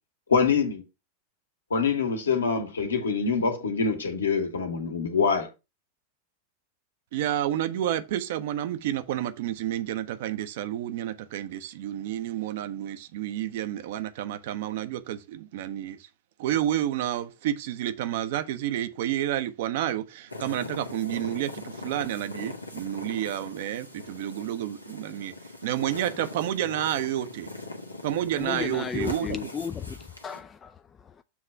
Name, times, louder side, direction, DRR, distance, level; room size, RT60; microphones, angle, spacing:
voice 1, 0.3-0.8 1.7-5.5, left 5 dB, 70° left, 1.6 m, -25 dB
voice 2, 7.1-16.0 16.4-25.3 25.6-27.5 28.0-29.4, right 12 dB, 55° right, 0.7 m, -30 dB
sound 1, 20.3-30.4, left 2 dB, 85° left, 1.1 m, -41 dB
voice 3, 28.4-30.0 30.2-30.7, left 6 dB, 20° left, 0.3 m, -33 dB
7.1 x 3.2 x 5.6 m
figure-of-eight pair, 90°, 0 cm